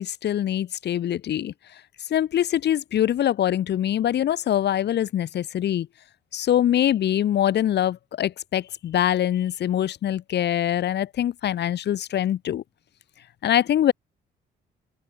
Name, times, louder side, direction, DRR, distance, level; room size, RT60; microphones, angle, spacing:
voice 1, 0.0-1.5 2.1-5.9 6.3-12.6 13.4-13.9, left 11 dB, 65° left, 1.7 m, -23 dB
open air
supercardioid pair, 75°, 19 cm